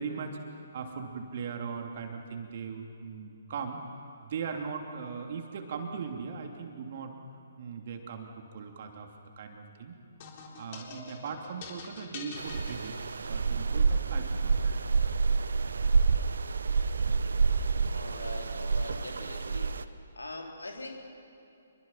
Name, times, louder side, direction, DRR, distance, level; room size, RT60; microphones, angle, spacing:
voice 1, 0.0-3.8 4.2-7.1 7.6-9.1 9.4-10.0 10.6-14.9, right 5 dB, 45° right, 3 dB, 2.9 m, -39 dB
sound 1, 10.2-13.6, left 4 dB, 35° left, 3.6 m, -46 dB
sound 2, 12.4-19.8, right 4 dB, 65° right, 0.9 m, -28 dB
voice 2, 17.9-19.7 20.1-21.1, left 2 dB, 75° left, 1 dB, 3.9 m, -41 dB
27.5 x 23.0 x 5.8 m, 2.7 s
figure-of-eight pair, 130°, 0 cm